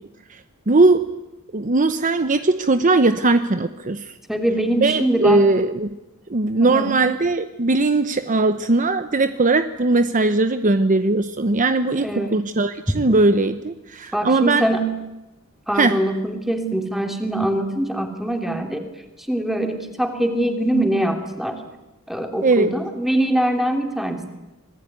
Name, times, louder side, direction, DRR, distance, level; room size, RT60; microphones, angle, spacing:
voice 1, 0.7-1.1 1.5-4.1 4.8-5.9 6.3-14.7 15.7-16.0 22.4-22.7, right 2 dB, 40° right, 10 dB, 0.9 m, -19 dB
voice 2, 4.3-5.4 6.6-6.9 12.0-12.4 14.1-14.9 15.7-18.8 19.3-21.6 22.1-24.3, right 1 dB, ahead, 5 dB, 3.2 m, -23 dB
26.0 x 19.5 x 9.5 m, 0.98 s
head